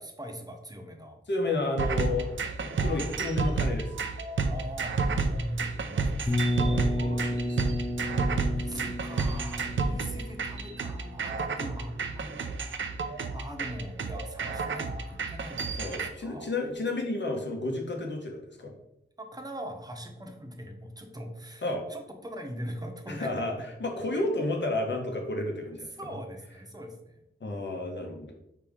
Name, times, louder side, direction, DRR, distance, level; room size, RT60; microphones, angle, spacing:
voice 1, 0.0-1.5 4.5-6.3 6.6-7.3 8.3-12.5 13.3-16.5 19.2-23.6 24.1-24.4 26.0-27.2, equal, 20° right, 3 dB, 0.8 m, -41 dB
voice 2, 1.3-2.3 2.6-3.9 6.6-7.6 15.8-18.7 21.6-21.8 23.1-23.5 23.8-25.9 27.4-28.3, left 2 dB, 65° left, 2 dB, 1.0 m, -31 dB
sound 1, 1.8-16.1, right 4 dB, 75° right, 0.4 m, -30 dB
sound 2, 6.3-12.0, left 1 dB, 20° left, 0.5 m, -32 dB
4.9 x 2.9 x 3.5 m, 0.80 s
wide cardioid pair, 75°, 20 cm